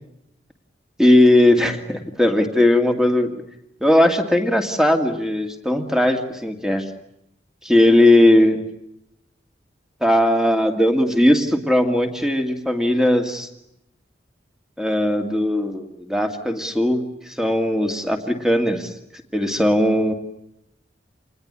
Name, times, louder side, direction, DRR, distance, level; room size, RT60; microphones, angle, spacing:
voice 1, 1.0-3.4 3.8-6.8 7.6-8.6 10.0-13.5 14.8-18.9 19.3-20.1, left 1 dB, 5° right, 5 dB, 2.3 m, -18 dB
28.0 x 20.5 x 10.0 m, 0.84 s
head